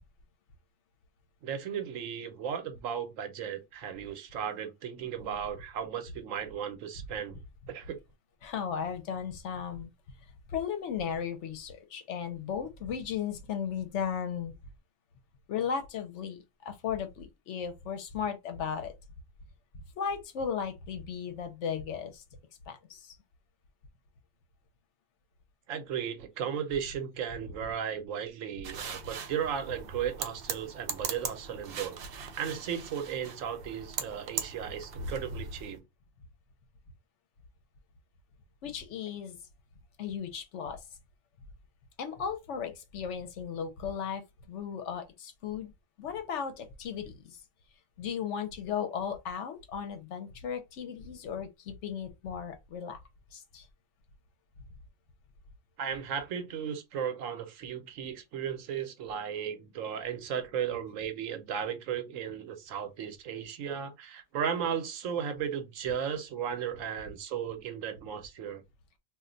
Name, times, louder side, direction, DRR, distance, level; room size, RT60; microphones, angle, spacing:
voice 1, 1.4-7.4 7.7-8.0 25.7-35.8 55.8-68.6, right 8 dB, 80° right, 1.0 m, -35 dB
voice 2, 8.4-9.9 10.5-14.5 15.5-18.9 20.0-22.2 22.7-23.2 38.6-39.4 40.0-40.8 42.0-45.7 46.0-47.4 48.0-53.0 53.3-53.7, left 7 dB, 70° left, 0.9 m, -36 dB
sound 1, 28.6-35.8, right 5 dB, 60° right, 0.7 m, -39 dB
2.4 x 2.2 x 3.7 m
omnidirectional pair, 1.3 m